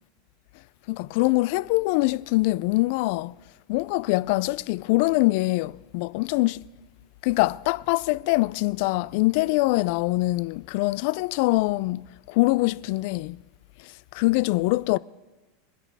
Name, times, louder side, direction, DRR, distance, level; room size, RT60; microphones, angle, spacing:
voice 1, 0.9-3.3 3.7-6.6 7.2-13.4 13.8-15.0, left 21 dB, 65° left, 0.3 m, -24 dB
21.5 x 10.0 x 4.7 m
hypercardioid pair, 105°, 0 cm